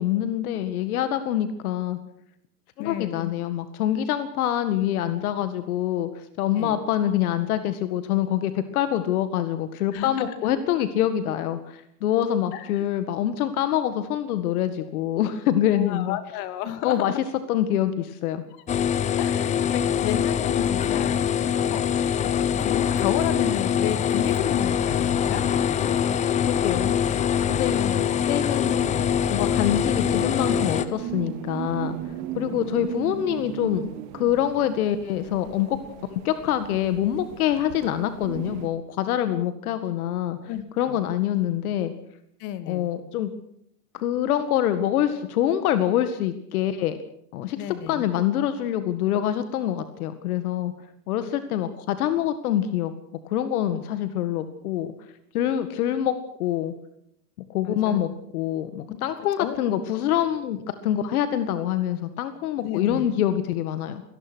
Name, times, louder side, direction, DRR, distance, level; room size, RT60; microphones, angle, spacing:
voice 1, 0.0-2.0 2.8-16.2 16.8-17.1 17.5-18.4 26.4-27.2 27.5-28.9 29.3-32.0 32.3-33.9 34.1-35.8 36.1-41.9 42.7-43.3 43.9-47.0 47.3-50.7 51.1-52.9 53.2-54.9 55.3-56.1 56.4-56.7 57.5-64.0, left 11 dB, 70° left, 11 dB, 2.0 m, -25 dB
voice 2, 2.8-3.3 6.5-6.8 9.9-10.3 12.5-12.9 15.8-17.2 19.2-21.2 21.7-21.8 22.6-25.4 27.7-28.0 32.5-32.9 40.5-40.6 40.9-41.0 42.4-42.8 47.6-48.0 57.6-58.0 58.9-59.0 59.4-59.6 62.6-63.0, left 11 dB, 45° left, 11 dB, 2.6 m, -31 dB
sound 1, 18.7-30.9, left 9 dB, 15° left, 0.8 m, -23 dB
sound 2, 19.3-38.7, right 12 dB, 45° right, 2.3 m, -39 dB
24.5 x 19.0 x 6.3 m, 0.70 s
supercardioid pair, 145°, 45 cm